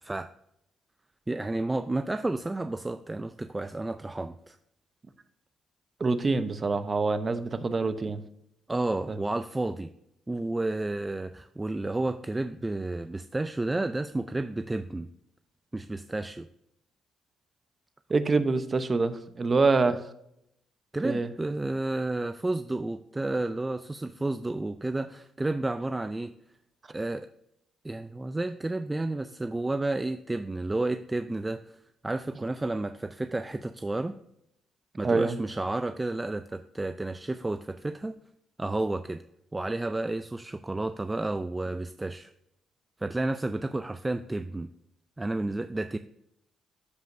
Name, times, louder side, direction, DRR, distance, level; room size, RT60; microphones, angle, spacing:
voice 1, 1.3-4.6 8.7-9.9 10.3-15.1 15.7-16.5 20.9-26.3 26.9-27.3 27.8-31.6 32.0-34.2 35.0-38.2 38.6-39.2 39.5-42.3 43.0-44.7 45.2-46.0, right 2 dB, 15° right, 10 dB, 0.4 m, -31 dB
voice 2, 6.0-8.2 9.1-9.2 18.1-20.0 21.0-21.3 35.0-35.4, right 3 dB, 30° right, 11 dB, 0.8 m, -25 dB
13.0 x 5.1 x 2.6 m, 0.78 s
cardioid pair, 90°, 0 cm